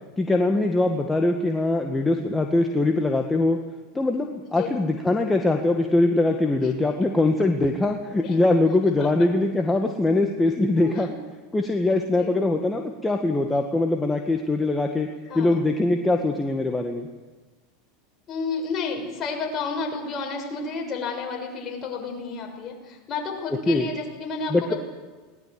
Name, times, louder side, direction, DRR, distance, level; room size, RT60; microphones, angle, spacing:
voice 1, 0.2-3.6 3.9-11.1 11.5-15.1 15.4-17.1 23.7-23.9 24.5-24.7, left 2 dB, 15° left, 3 dB, 1.9 m, -22 dB
voice 2, 10.8-11.2 12.0-12.3 15.2-15.6 18.3-24.8, left 4 dB, 35° left, 1 dB, 6.7 m, -31 dB
19.5 x 19.0 x 7.7 m, 1.3 s
hypercardioid pair, 90°, 0 cm